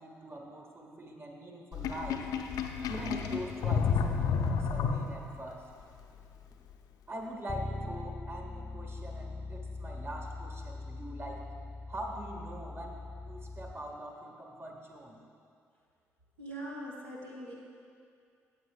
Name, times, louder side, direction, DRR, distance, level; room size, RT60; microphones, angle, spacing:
voice 1, 0.0-2.2 2.9-5.6 7.1-11.5 11.9-15.2, right 1 dB, 35° right, 1 dB, 1.7 m, -43 dB
Sink (filling or washing), 1.7-5.5, left 6 dB, 60° left, 0.6 m, -31 dB
Bass guitar, 7.5-13.7, left 2 dB, 5° left, 0.8 m, -41 dB
voice 2, 16.4-17.5, right 1 dB, 70° right, -5 dB, 1.3 m, -41 dB
18.5 x 7.7 x 2.4 m, 2.3 s
figure-of-eight pair, 45°, 7 cm